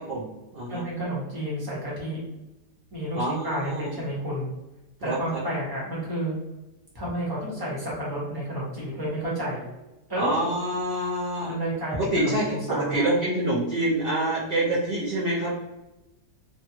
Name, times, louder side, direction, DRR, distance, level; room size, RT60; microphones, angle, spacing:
voice 1, 0.7-2.2 2.9-4.5 5.0-6.4 6.9-9.7 10.1-10.5 11.5-13.2, right 1 dB, 15° right, -6 dB, 1.0 m, -31 dB
voice 2, 3.1-4.0 5.0-5.4 10.1-11.5 11.9-15.5, right 1 dB, 55° right, -8 dB, 0.6 m, -26 dB
3.2 x 2.3 x 2.9 m, 0.99 s
omnidirectional pair, 1.8 m